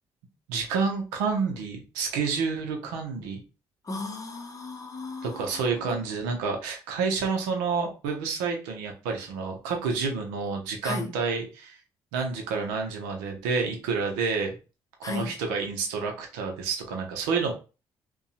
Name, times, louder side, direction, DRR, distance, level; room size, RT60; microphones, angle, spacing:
voice 1, 0.5-3.4 5.2-11.8 12.1-14.6 15.1-17.5, right 5 dB, 90° right, 0.6 m, -29 dB
voice 2, 3.8-6.0 10.8-11.1 15.0-15.3, left 3 dB, 35° left, 0.8 m, -36 dB
2.7 x 2.2 x 2.4 m
hypercardioid pair, 55°, 10 cm